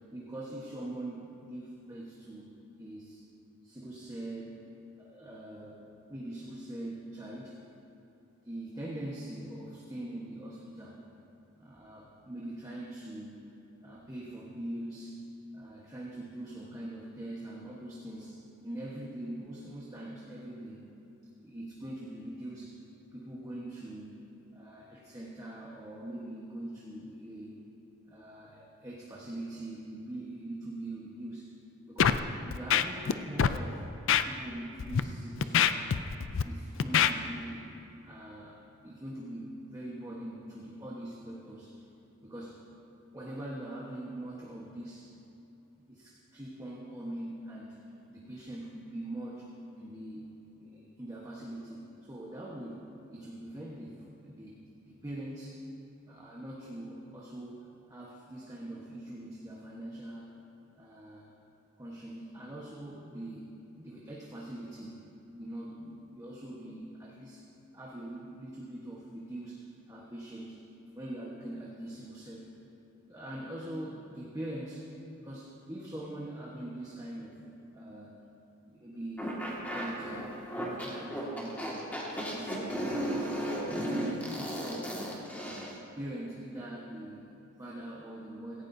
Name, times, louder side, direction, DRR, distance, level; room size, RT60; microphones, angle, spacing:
voice 1, 0.1-2.5 2.8-3.2 3.6-4.6 5.0-7.6 8.4-11.0 11.6-13.4 13.8-15.3 15.5-20.9 21.4-22.8 23.1-24.2 24.5-27.6 28.1-31.5 31.9-33.8 34.2-35.9 36.4-37.7 38.0-38.6 38.8-41.8 42.2-42.6 43.1-45.1 45.9-54.6 54.9-55.6 56.1-60.4 60.7-61.3 61.8-65.0 65.3-67.5 67.7-70.6 70.9-72.5 73.1-74.9 75.2-78.2 78.7-80.3 80.7-81.8 82.1-83.0 83.3-85.0 85.4-85.6 85.9-88.6, right 1 dB, 15° right, -5 dB, 1.2 m, -43 dB
Scratching (performance technique), 32.0-32.2 32.5-33.1 33.4-33.6 34.1-34.2 34.8-35.0 35.4-36.4 36.8-37.1, left 8 dB, 65° left, 0.4 m, -24 dB
sound 1, 79.2-85.8, equal, 10° left, 1.8 m, -35 dB
17.0 x 16.5 x 2.7 m, 2.9 s
head